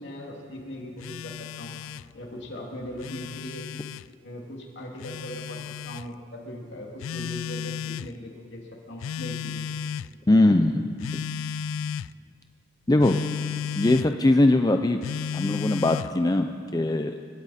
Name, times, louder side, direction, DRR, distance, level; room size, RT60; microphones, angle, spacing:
voice 1, 0.0-1.7 2.1-3.6 4.2-9.6, equal, 60° left, -1 dB, 2.6 m, -39 dB
Telephone, 1.0-2.1 2.8-4.1 5.0-6.1 7.0-8.1 9.0-10.1 11.0-12.1 13.0-14.1 15.0-16.2, left 7 dB, 85° left, 0.3 m, -33 dB
voice 2, 10.3-11.2 12.9-13.2 13.8-15.0 15.3-17.1, left 2 dB, 20° left, 6 dB, 0.5 m, -21 dB
25.0 x 13.0 x 4.3 m, 2.3 s
head